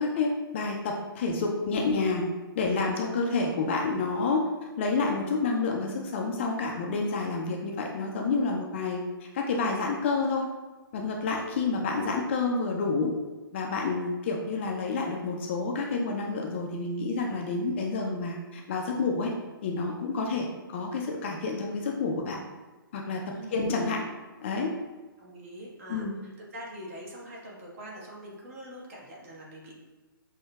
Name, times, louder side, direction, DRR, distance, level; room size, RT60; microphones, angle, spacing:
voice 1, 0.0-2.3 2.6-4.5 4.8-10.5 10.9-13.1 13.5-19.3 19.6-22.4 22.9-23.2 23.5-24.1 24.4-24.7 25.9-26.1, left 3 dB, 30° left, 1 dB, 0.4 m, -29 dB
voice 2, 25.2-26.1 26.5-29.8, right 1 dB, 40° right, -3 dB, 1.1 m, -43 dB
6.0 x 2.7 x 2.2 m, 1.2 s
figure-of-eight pair, 125°, 12 cm